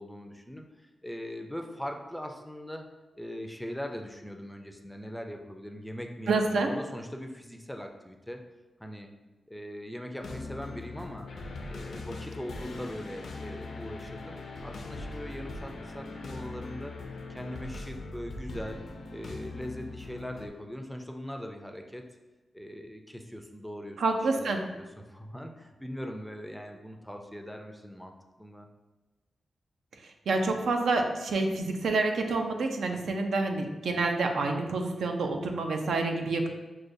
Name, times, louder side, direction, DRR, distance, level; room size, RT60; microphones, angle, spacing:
voice 1, 0.0-2.9 3.2-8.4 8.8-9.1 9.5-11.3 11.7-14.4 14.6-16.9 17.3-18.8 19.1-22.0 22.5-28.1 28.4-28.7, equal, ahead, 3 dB, 0.4 m, -40 dB
voice 2, 6.3-6.7 24.0-24.6 30.3-36.5, right 3 dB, 90° right, 4 dB, 0.4 m, -28 dB
sound 1, 10.2-20.5, left 3 dB, 70° left, 0.4 m, -41 dB
6.2 x 2.3 x 2.6 m, 1.2 s
wide cardioid pair, 120°, 0 cm